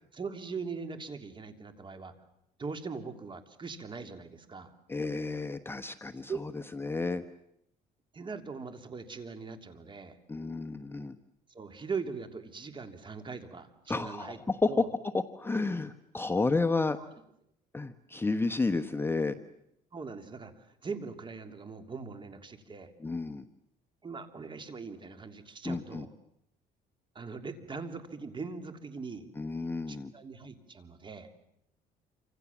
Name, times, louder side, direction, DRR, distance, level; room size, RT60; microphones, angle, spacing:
voice 1, 0.1-2.1 2.6-4.7 6.3-6.5 8.1-10.2 11.5-14.4 14.7-14.9 17.0-17.1 19.9-22.9 24.0-26.1 27.1-29.3 29.9-31.3, right 4 dB, 30° right, 8 dB, 3.2 m, -41 dB
voice 2, 4.9-6.3 6.8-7.2 10.3-11.1 13.9-14.7 15.1-17.0 17.7-19.3 23.0-23.4 25.6-26.1 29.4-30.1, left 3 dB, 15° left, 8 dB, 1.1 m, -31 dB
28.0 x 26.5 x 7.3 m, 0.77 s
cardioid pair, 110°, 17 cm